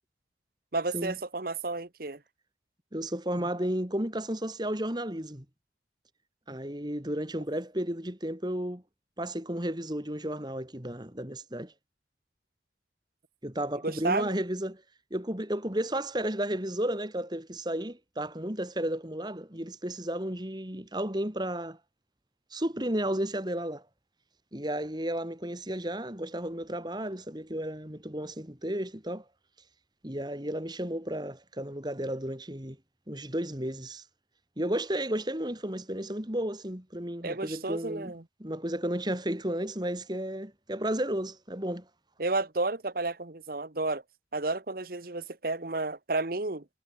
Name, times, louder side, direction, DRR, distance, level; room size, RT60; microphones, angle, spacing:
voice 1, 0.7-2.2 13.8-14.4 37.2-38.2 42.2-44.0 44.3-46.6, right 3 dB, 50° right, 1.3 m, -31 dB
voice 2, 2.9-5.4 6.5-8.8 9.2-11.7 13.4-14.8 15.1-21.8 22.5-23.9 24.5-29.2 30.0-32.8 33.1-34.1 34.6-38.1 38.4-41.8, right 1 dB, 25° right, 2.8 m, -33 dB
head